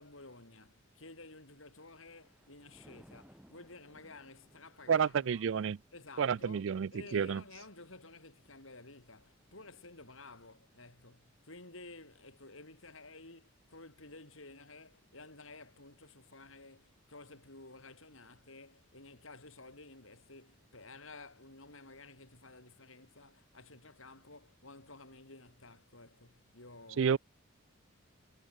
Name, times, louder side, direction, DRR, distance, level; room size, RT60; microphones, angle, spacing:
voice 1, 0.0-5.5 5.9-27.2, left 3 dB, 70° left, 6.3 m, -53 dB
Thunder, 1.9-13.1 13.5-13.9, equal, 5° right, 4.3 m, -65 dB
voice 2, 4.9-5.8 6.2-7.4 27.0-27.2, right 7 dB, 65° right, 0.4 m, -30 dB
head